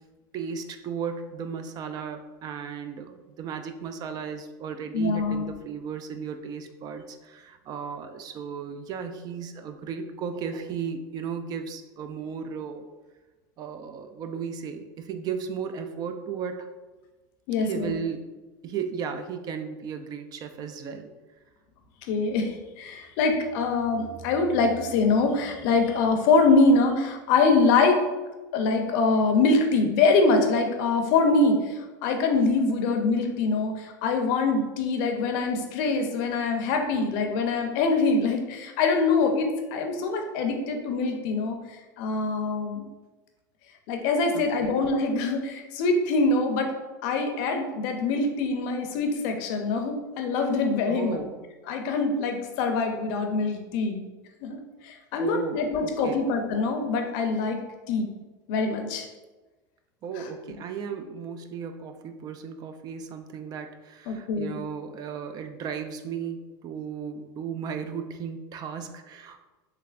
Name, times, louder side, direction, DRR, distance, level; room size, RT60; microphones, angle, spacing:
voice 1, 0.3-12.9 13.6-16.7 17.6-18.3 18.6-21.1 44.3-44.8 50.8-51.3 55.2-56.2 60.0-69.4, right 6 dB, 40° right, 7 dB, 0.3 m, -35 dB
voice 2, 4.9-5.5 17.5-17.9 22.1-28.0 28.5-41.6 42.0-42.8 43.9-46.7 47.0-51.2 51.7-54.0 54.4-54.6 54.8-57.6 57.9-58.1 58.5-59.1 64.1-64.6, left 3 dB, 65° left, 4 dB, 0.6 m, -24 dB
3.3 x 3.2 x 2.4 m, 1.2 s
supercardioid pair, 115°, 10 cm